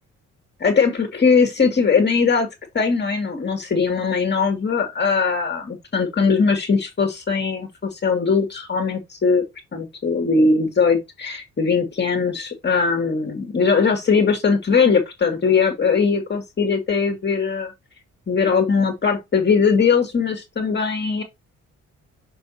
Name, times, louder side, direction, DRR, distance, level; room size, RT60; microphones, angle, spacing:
voice 1, 0.6-2.5 2.7-9.4 9.7-17.7 18.3-21.2, left 5 dB, 35° left, 2.3 m, -20 dB
6.5 x 3.4 x 4.3 m
cardioid pair, 90°, 30 cm